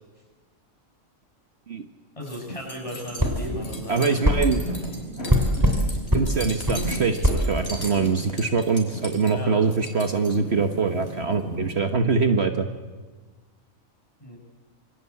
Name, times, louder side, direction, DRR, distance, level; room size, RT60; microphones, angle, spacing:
sound 1, 2.2-11.7, equal, 50° left, 5.0 m, -36 dB
voice 1, 2.2-4.5 9.3-9.5 14.2-14.4, equal, 25° left, 0 dB, 7.5 m, -36 dB
sound 2, 3.2-3.4 4.2-4.4 5.3-5.8 6.1-6.3 6.7-6.8 7.2-7.4, equal, 15° right, 3.7 m, -20 dB
voice 2, 3.9-4.6 6.1-12.7, right 4 dB, 50° right, 6 dB, 1.5 m, -23 dB
28.0 x 24.0 x 8.5 m, 1.3 s
omnidirectional pair, 1.4 m